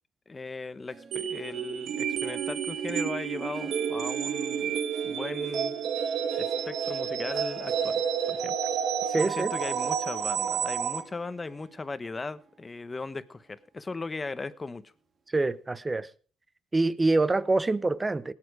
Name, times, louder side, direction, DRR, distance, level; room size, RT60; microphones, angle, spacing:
voice 1, 0.3-4.7 5.0-5.7 6.3-8.7 9.0-14.9, left 3 dB, 25° left, 1.0 m, -38 dB
Harp, 0.9-13.6 14.0-14.4 14.9-15.0, right 4 dB, 50° right, 2.3 m, -49 dB
sound 1, 1.1-11.0, right 8 dB, 75° right, 1.5 m, -30 dB
voice 2, 9.1-9.5 15.3-16.1 16.7-18.3, right 2 dB, 20° right, 0.8 m, -25 dB
19.0 x 8.8 x 4.9 m
cardioid pair, 90°, 0 cm